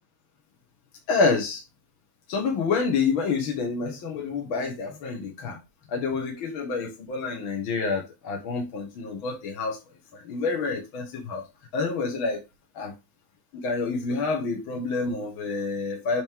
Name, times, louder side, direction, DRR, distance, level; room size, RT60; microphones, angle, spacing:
voice 1, 1.1-1.6 2.3-5.6 5.9-9.8 10.1-11.4 11.7-12.4 12.7-12.9 13.5-16.2, left 4 dB, 55° left, 0 dB, 1.5 m, -28 dB
7.8 x 5.4 x 3.6 m, 0.24 s
omnidirectional pair, 4.3 m